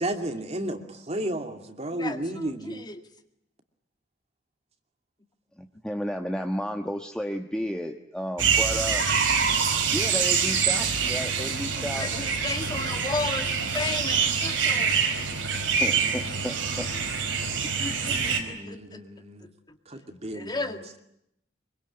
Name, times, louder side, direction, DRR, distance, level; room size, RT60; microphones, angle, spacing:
voice 1, 0.0-2.9 18.0-19.5 19.9-20.8, right 1 dB, 35° right, 6 dB, 2.6 m, -33 dB
voice 2, 5.6-9.0 9.9-12.1 15.8-16.9, equal, 5° left, 4 dB, 1.3 m, -32 dB
sound 1, 8.4-18.4, right 6 dB, 80° right, 4.8 m, -25 dB
voice 3, 11.8-14.9 17.8-19.0 20.3-20.8, left 3 dB, 20° left, 6 dB, 2.0 m, -33 dB
25.5 x 24.0 x 9.8 m, 0.79 s
head